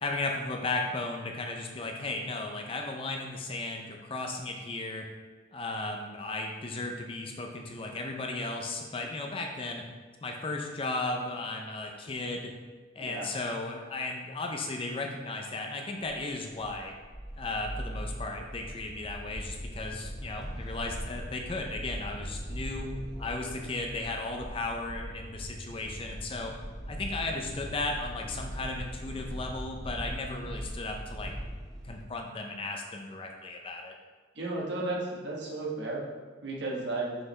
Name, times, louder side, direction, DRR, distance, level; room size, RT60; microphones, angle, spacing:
voice 1, 0.0-5.1 5.5-9.8 10.2-12.5 13.0-16.9 17.4-26.5 26.9-31.3 31.8-33.9, left 2 dB, 30° left, 2 dB, 0.5 m, -35 dB
sound 1, 16.0-32.0, equal, ahead, 0.9 m, -40 dB
voice 2, 34.3-36.0 36.4-37.2, right 2 dB, 60° right, -4 dB, 1.3 m, -33 dB
5.9 x 4.9 x 3.2 m, 1.4 s
head